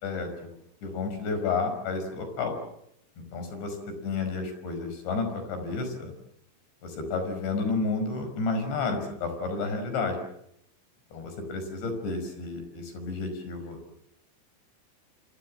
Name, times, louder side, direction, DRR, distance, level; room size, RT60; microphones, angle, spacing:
voice 1, 0.0-2.6 3.2-6.1 6.8-10.2 11.1-13.8, left 4 dB, 70° left, 7 dB, 7.4 m, -31 dB
27.5 x 26.0 x 7.5 m, 0.77 s
omnidirectional pair, 5.3 m